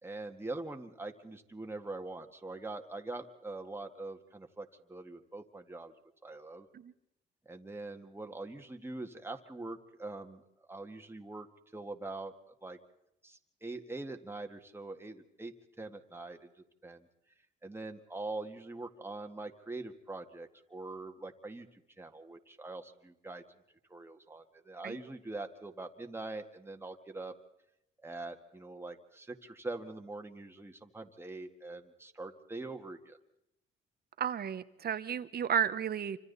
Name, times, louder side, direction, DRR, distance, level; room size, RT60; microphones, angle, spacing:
voice 1, 0.0-5.9 6.2-6.7 7.5-11.5 11.7-12.3 12.6-12.8 13.2-15.5 15.8-16.5 16.8-17.1 17.6-23.4 23.9-27.3 28.0-33.2, right 2 dB, 10° right, 4 dB, 1.9 m, -43 dB
voice 2, 34.2-36.2, right 9 dB, 50° right, 13 dB, 1.1 m, -33 dB
27.5 x 25.5 x 4.1 m, 0.85 s
cardioid pair, 90°, 20 cm